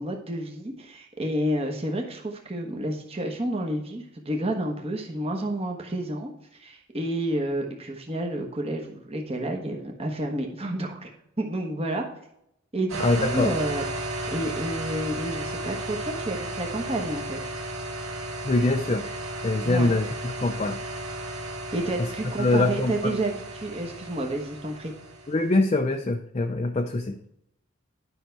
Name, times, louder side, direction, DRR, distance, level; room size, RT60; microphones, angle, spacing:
voice 1, 0.0-11.1 11.4-12.0 12.7-17.5 19.6-19.9 21.7-24.9, right 1 dB, 30° right, 2 dB, 1.1 m, -30 dB
sound 1, 12.9-25.5, right 1 dB, 80° right, 2.0 m, -34 dB
voice 2, 13.0-13.5 18.4-19.1 19.4-20.8 22.0-22.1 22.4-23.1 25.3-27.2, left 2 dB, 30° left, 5 dB, 0.5 m, -24 dB
10.0 x 5.7 x 4.6 m, 0.76 s
head